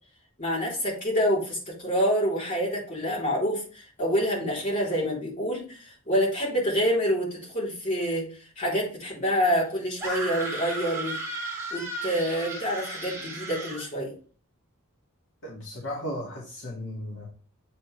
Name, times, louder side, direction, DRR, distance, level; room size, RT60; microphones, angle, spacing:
voice 1, 0.4-8.3 8.6-11.2 11.7-14.1, equal, 35° left, -5 dB, 3.5 m, -27 dB
sound 1, 10.0-13.9, right 2 dB, 15° right, 1.7 m, -35 dB
voice 2, 15.4-17.2, equal, 60° left, -5 dB, 2.1 m, -35 dB
8.2 x 4.6 x 3.2 m, 0.40 s
head